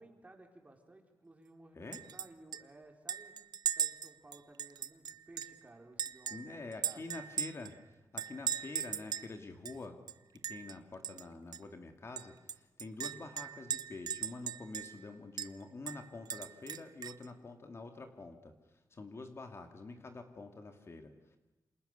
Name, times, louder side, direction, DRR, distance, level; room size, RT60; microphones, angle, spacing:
voice 1, 0.0-3.3 3.7-7.2, right 2 dB, 20° right, 3 dB, 4.5 m, -57 dB
Chink clink, 1.9-2.3 2.5-2.6 3.1-5.6 6.0-7.7 8.2-9.3 9.6-9.7 10.1-10.7 11.0-11.2 11.5-11.6 12.2-15.0 15.4-15.5 15.9-17.2, right 8 dB, 80° right, 0.8 m, -38 dB
voice 2, 6.3-7.8 8.1-10.0 10.5-18.5 18.9-21.4, left 3 dB, 40° left, 6 dB, 2.5 m, -47 dB
28.5 x 27.0 x 6.9 m, 1.1 s
wide cardioid pair, 105°, 7 cm